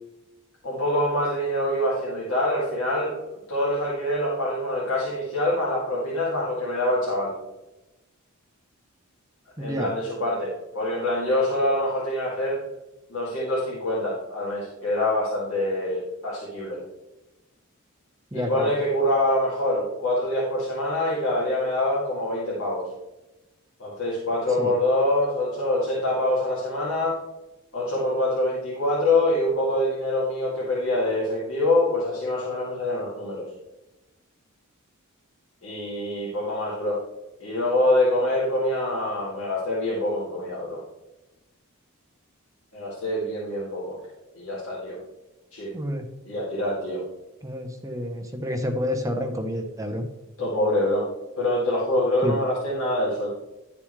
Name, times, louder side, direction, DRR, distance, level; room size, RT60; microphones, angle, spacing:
voice 1, 0.6-3.1 3.5-7.3 9.6-12.6 13.1-16.8 18.3-22.9 23.8-27.2 27.7-33.5 35.6-37.0 37.4-40.8 42.7-44.0 44.3-45.0 45.5-45.7 46.2-47.0 50.4-51.0 51.4-53.3, left 1 dB, 65° left, -6 dB, 2.4 m, -25 dB
voice 2, 9.6-9.9 18.3-18.7 24.6-24.7 45.7-46.0 47.4-50.1 52.2-52.3, equal, 15° right, 5 dB, 0.9 m, -29 dB
11.5 x 7.0 x 3.2 m, 1.0 s
head